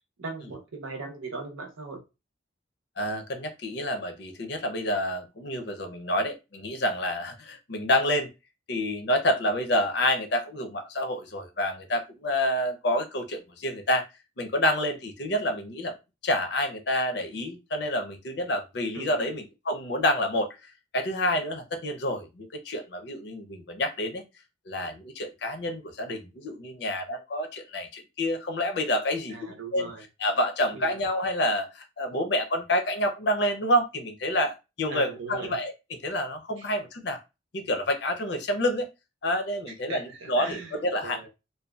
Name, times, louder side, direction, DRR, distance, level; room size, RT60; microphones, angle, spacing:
voice 1, 0.2-2.0 18.9-19.3 29.3-30.0 30.7-31.0 34.9-35.5 36.6-36.7 39.9-40.7 41.0-41.3, right 4 dB, 90° right, 3 dB, 0.7 m, -39 dB
voice 2, 3.0-8.3 8.7-14.0 14.4-15.9 16.2-20.5 20.9-24.2 24.7-29.9 30.2-37.2 37.5-38.9 39.2-41.3, left 1 dB, 60° left, 6 dB, 0.6 m, -28 dB
2.6 x 2.3 x 2.3 m, 0.26 s
head